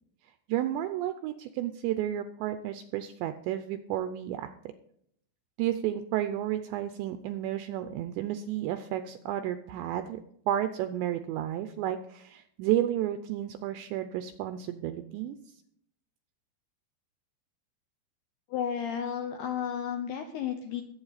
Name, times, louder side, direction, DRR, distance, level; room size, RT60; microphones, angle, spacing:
voice 1, 0.5-4.5 5.6-10.2 10.5-15.4 19.6-19.8, right 12 dB, 85° right, 9 dB, 2.6 m, -32 dB
voice 2, 18.5-20.8, left 8 dB, 80° left, 6 dB, 2.3 m, -32 dB
21.0 x 8.6 x 4.1 m, 0.70 s
omnidirectional pair, 5.7 m